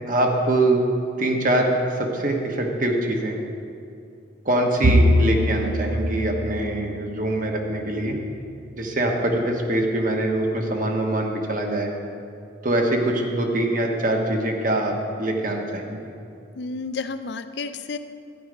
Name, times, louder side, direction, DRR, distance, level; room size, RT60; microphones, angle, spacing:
voice 1, 0.0-0.8 1.2-3.4 4.4-8.2 8.8-11.9 12.6-16.1, right 1 dB, 45° right, 1 dB, 1.3 m, -23 dB
Bowed string instrument, 4.8-8.3, equal, 70° right, 0.7 m, -23 dB
voice 2, 16.5-18.0, left 4 dB, 65° left, 11 dB, 0.5 m, -31 dB
12.0 x 9.6 x 5.2 m, 2.5 s
head